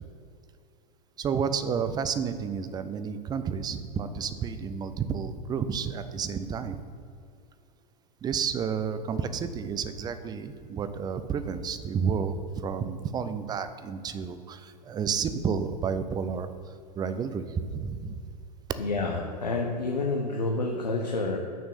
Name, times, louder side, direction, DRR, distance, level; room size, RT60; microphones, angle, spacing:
voice 1, 1.2-6.8 8.2-16.5 17.0-18.2, right 6 dB, 20° right, 11 dB, 0.6 m, -31 dB
voice 2, 18.8-21.4, left 3 dB, 80° left, 1 dB, 0.9 m, -29 dB
6.5 x 6.1 x 6.6 m, 2.4 s
figure-of-eight pair, 90°, 21 cm